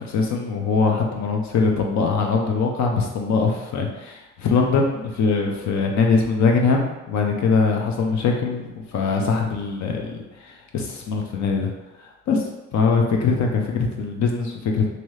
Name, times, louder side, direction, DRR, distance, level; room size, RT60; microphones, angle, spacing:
voice 1, 0.0-11.7 12.3-12.5 12.7-15.0, left 4 dB, 70° left, 1 dB, 0.7 m, -22 dB
3.0 x 2.7 x 3.2 m, 1.0 s
cardioid pair, 90°, 30 cm